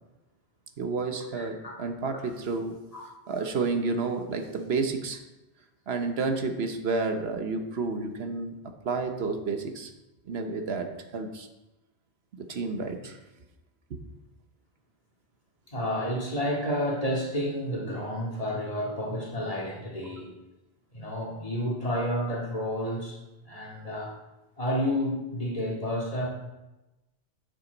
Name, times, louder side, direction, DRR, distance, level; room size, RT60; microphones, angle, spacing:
voice 1, 0.8-2.8 3.3-5.2 5.9-8.6 8.8-9.9 10.2-11.5 12.3-13.2 13.9-14.0, right 4 dB, 70° right, 6 dB, 1.1 m, -30 dB
voice 2, 1.3-1.7 2.9-3.0 15.7-20.3 20.9-23.2 23.5-24.2 24.6-26.3, equal, 35° left, -4 dB, 2.1 m, -30 dB
9.1 x 7.4 x 3.9 m, 1.0 s
omnidirectional pair, 1.1 m